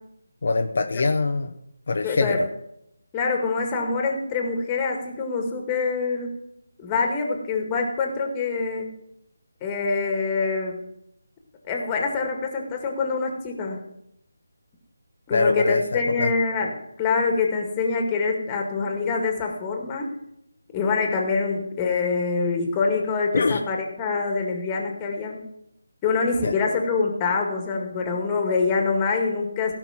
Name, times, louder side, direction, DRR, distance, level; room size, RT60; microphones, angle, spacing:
voice 1, 0.4-1.5 1.9-2.5 15.3-16.3 23.3-23.6 26.4-26.5, left 3 dB, 50° left, 5 dB, 0.8 m, -23 dB
voice 2, 2.0-2.4 3.1-6.3 6.8-8.9 9.6-10.8 11.7-13.8 15.3-16.7 17.0-20.1 20.7-25.4 26.0-29.7, left 4 dB, 15° left, 2 dB, 2.0 m, -25 dB
17.0 x 5.9 x 5.8 m, 0.79 s
figure-of-eight pair, 155°, 0 cm